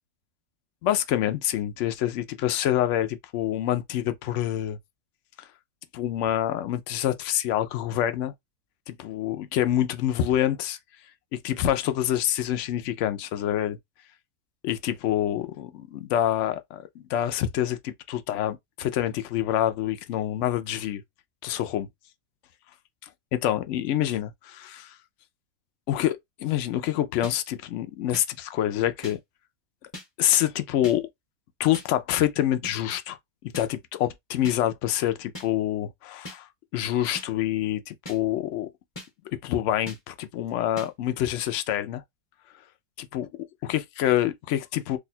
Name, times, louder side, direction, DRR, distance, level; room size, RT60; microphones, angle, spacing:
voice 1, 0.8-4.8 5.9-8.3 8.9-10.8 11.4-13.8 14.6-21.0 21.4-21.9 23.3-24.9 25.9-29.2 30.2-31.1 31.6-33.2 33.5-36.5 36.7-38.7 39.4-42.0 43.0-43.3 43.6-45.0, left 12 dB, 65° left, 0.7 m, -26 dB
sound 1, 27.2-27.4 28.1-28.3 29.0-29.2 29.9-30.1 30.8-31.0 31.7-31.9 32.6-32.8 33.5-33.7 34.4-34.6 35.4-35.5 36.3-36.4 37.2-37.3 38.1-38.2 39.0-39.1 39.9-40.0 40.8-40.9, left 1 dB, 20° left, 0.9 m, -39 dB
2.7 x 2.3 x 4.1 m
omnidirectional pair, 1.6 m